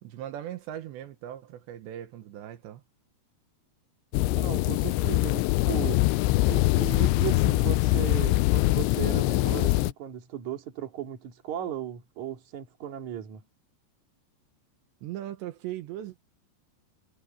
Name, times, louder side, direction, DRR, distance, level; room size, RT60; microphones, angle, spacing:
voice 1, 0.0-2.8 15.0-16.3, right 12 dB, 80° right, 3.4 m, -39 dB
sound 1, 4.1-9.9, left 18 dB, 85° left, 2.9 m, -23 dB
voice 2, 4.3-6.0 6.5-13.4, right 10 dB, 45° right, 3.4 m, -36 dB
omnidirectional pair, 5.2 m